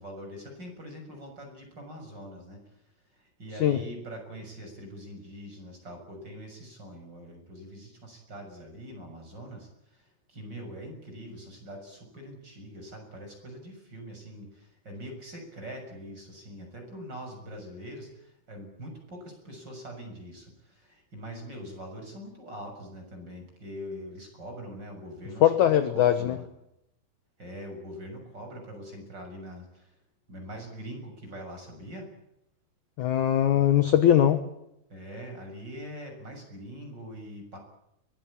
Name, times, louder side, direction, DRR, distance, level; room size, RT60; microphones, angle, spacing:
voice 1, 0.0-2.8 3.1-26.5 27.4-29.9 30.3-32.1 34.9-37.6, equal, 25° right, 3 dB, 7.2 m, -43 dB
voice 2, 25.4-26.4 33.0-34.4, left 11 dB, 65° left, 10 dB, 2.0 m, -21 dB
23.0 x 19.5 x 8.7 m, 0.83 s
omnidirectional pair, 4.8 m